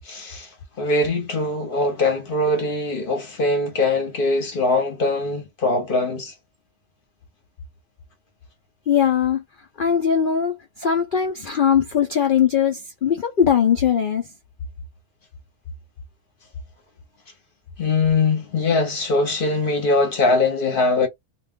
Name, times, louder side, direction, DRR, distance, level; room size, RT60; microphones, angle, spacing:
voice 1, 0.0-0.5 0.8-6.3 17.8-21.1, left 3 dB, 45° left, 0.9 m, -22 dB
voice 2, 8.9-9.4 9.8-14.3, left 8 dB, 90° left, 0.4 m, -20 dB
2.4 x 2.3 x 3.5 m
omnidirectional pair, 1.6 m